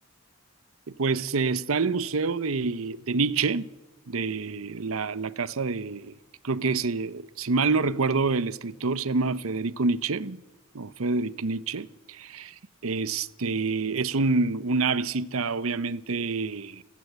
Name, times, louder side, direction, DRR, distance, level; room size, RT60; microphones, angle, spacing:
voice 1, 0.9-3.7 4.1-6.1 6.4-10.4 10.7-12.5 12.8-16.8, right 4 dB, 80° right, 0.8 m, -27 dB
29.5 x 14.5 x 8.1 m
head